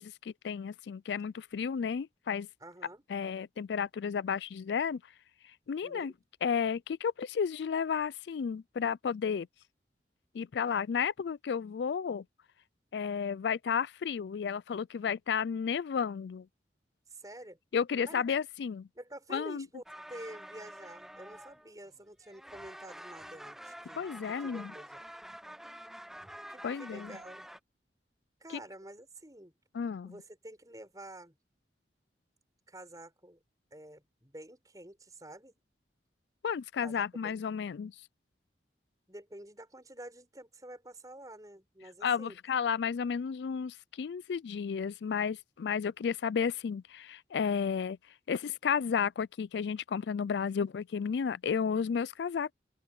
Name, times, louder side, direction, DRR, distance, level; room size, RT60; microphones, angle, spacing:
voice 1, 0.0-2.5 3.1-5.1 5.4-6.1 6.4-9.5 10.3-12.3 12.9-16.5 17.7-18.9 19.3-19.7 24.0-24.7 26.6-27.2 29.7-30.2 36.4-38.0 42.0-52.5, left 6 dB, 80° left, 0.4 m, -32 dB
voice 2, 2.6-3.0 5.8-6.1 17.1-17.6 18.1-18.2 19.0-19.8 20.1-24.1 24.4-25.1 26.5-27.4 28.4-29.5 30.0-31.3 32.7-33.4 33.7-35.5 36.8-37.4 39.1-42.3, right 1 dB, 20° right, 7.1 m, -48 dB
sound 1, 19.9-22.0 22.2-27.6, equal, ahead, 0.7 m, -48 dB
open air
head